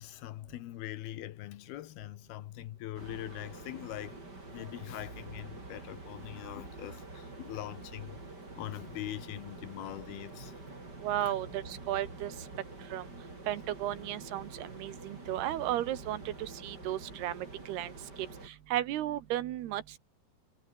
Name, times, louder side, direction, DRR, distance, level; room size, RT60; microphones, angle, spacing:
voice 1, 0.0-4.2 4.5-8.2 8.6-10.5 11.2-11.4, left 14 dB, 75° left, 2.9 m, -42 dB
sound 1, 2.9-18.5, right 2 dB, 25° right, 6.5 m, -47 dB
voice 2, 11.0-12.3 12.9-13.0 13.5-17.9 18.2-18.3 18.7-19.8, right 13 dB, 80° right, 3.4 m, -34 dB
omnidirectional pair, 4.7 m